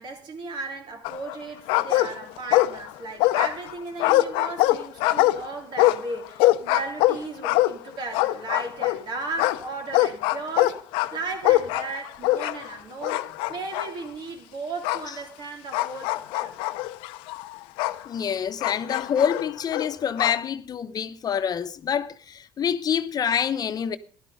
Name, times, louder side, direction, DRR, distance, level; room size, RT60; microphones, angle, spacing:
voice 1, 0.0-16.6, right 3 dB, 60° right, 3.5 m, -36 dB
sound 1, 1.0-1.4 1.7-2.9 3.2-9.0 9.4-12.7 13.0-13.9 14.8-15.1 15.7-18.0 18.6-20.4, left 17 dB, 85° left, 0.7 m, -23 dB
voice 2, 18.1-24.0, left 8 dB, 50° left, 0.9 m, -26 dB
12.5 x 11.5 x 5.1 m
supercardioid pair, 75°, 9 cm